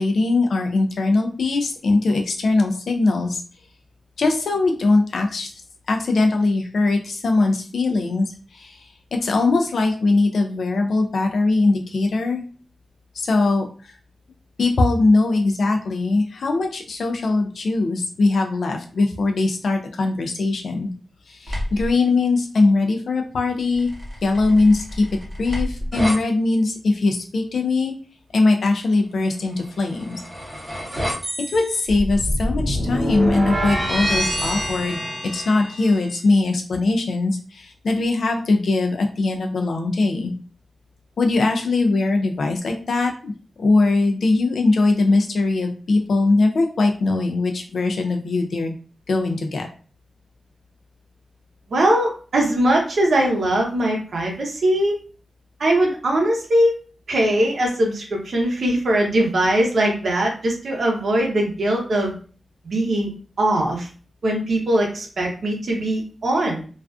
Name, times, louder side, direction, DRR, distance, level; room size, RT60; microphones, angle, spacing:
voice 1, 0.0-3.4 4.2-5.5 5.9-12.4 13.1-14.0 14.6-20.9 21.3-23.9 24.2-25.0 25.4-27.9 28.3-30.2 30.7-30.8 31.5-35.0 35.3-40.3 41.2-43.3 43.6-48.8 49.1-49.7, left 3 dB, 70° left, 3 dB, 0.3 m, -21 dB
sound 1, 21.5-21.9 23.8-26.2 29.7-36.1, equal, 20° right, 0.8 m, -26 dB
voice 2, 51.7-55.0 55.6-56.7 57.1-62.1 62.7-63.1 63.4-63.9 64.2-66.7, right 1 dB, 65° right, 0 dB, 0.6 m, -21 dB
2.3 x 2.3 x 2.3 m, 0.39 s
wide cardioid pair, 130°, 0 cm